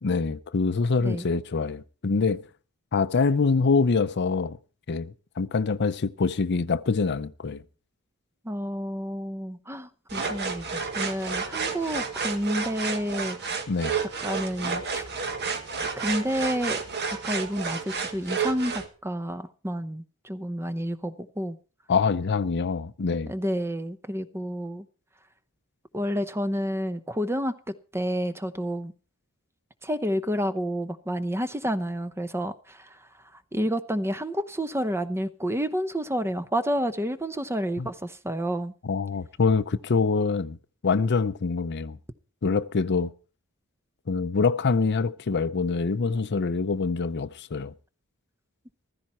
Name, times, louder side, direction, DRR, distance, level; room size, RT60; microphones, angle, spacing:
voice 1, 0.0-2.4 2.9-4.6 4.9-7.6 13.7-14.0 21.9-23.3 37.8-37.9 38.8-40.6 40.8-42.0 42.4-43.1 44.1-47.7, left 4 dB, 50° left, 0.6 m, -25 dB
voice 2, 8.4-13.4 14.0-15.0 16.0-16.8 17.2-21.6 23.3-24.8 25.9-28.9 29.8-33.0 33.5-38.7, equal, 10° right, 0.8 m, -30 dB
sound 1, 10.1-18.9, right 5 dB, 50° right, 1.6 m, -31 dB
15.0 x 13.5 x 4.3 m
head